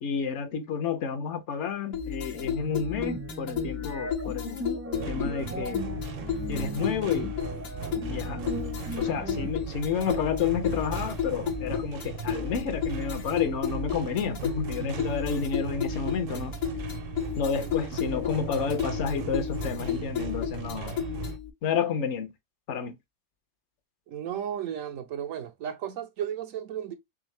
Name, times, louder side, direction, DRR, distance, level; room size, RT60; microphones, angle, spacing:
voice 1, 0.0-4.6 5.1-5.9 6.5-7.4 8.1-8.4 9.0-16.6 17.4-21.0 21.6-22.3 22.7-23.0, left 6 dB, 65° left, 0.9 m, -30 dB
sound 1, 1.9-21.5, left 8 dB, 85° left, 1.2 m, -33 dB
sound 2, 2.3-9.5, right 1 dB, 20° right, 0.3 m, -39 dB
sound 3, 4.9-21.4, right 7 dB, 60° right, 0.7 m, -38 dB
voice 2, 24.1-26.9, right 9 dB, 90° right, 1.1 m, -34 dB
3.7 x 3.1 x 3.1 m
omnidirectional pair, 1.3 m